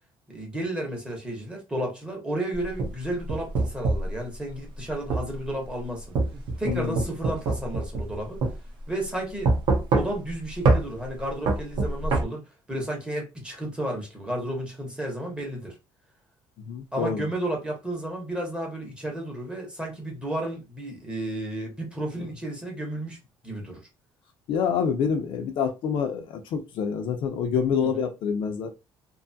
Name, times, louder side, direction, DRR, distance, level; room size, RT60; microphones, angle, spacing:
voice 1, 0.3-6.2 6.6-8.4 8.9-9.5 9.9-15.7 16.9-23.2 23.4-23.8 27.8-28.1, right 1 dB, 10° right, 0.8 m, -32 dB
sound 1, 2.6-4.1 5.1-5.3 6.2-8.1 8.4-8.6 9.5-10.3 10.7-10.8 11.5-12.2, right 3 dB, 55° right, 0.6 m, -23 dB
voice 2, 6.6-7.0 16.7-17.2 24.5-28.7, left 7 dB, 60° left, 0.5 m, -27 dB
2.6 x 2.3 x 2.6 m
cardioid pair, 170°, 10 cm